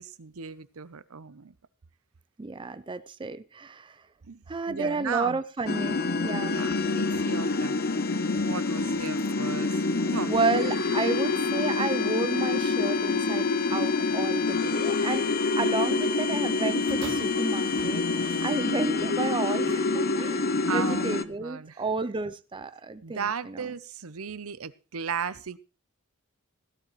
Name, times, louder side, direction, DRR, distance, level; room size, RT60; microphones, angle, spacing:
voice 1, 0.0-1.5 4.3-5.4 6.5-7.8 8.1-9.7 10.0-10.4 20.7-21.8 23.0-25.6, right 6 dB, 85° right, 0.7 m, -36 dB
voice 2, 2.4-4.0 4.5-6.6 10.3-15.3 15.6-23.6, right 3 dB, 25° right, 0.5 m, -31 dB
sound 1, 5.7-21.2, left 3 dB, 45° left, 0.7 m, -26 dB
sound 2, 16.9-19.1 19.9-20.0, right 4 dB, 65° right, 1.6 m, -46 dB
17.0 x 12.0 x 3.1 m
head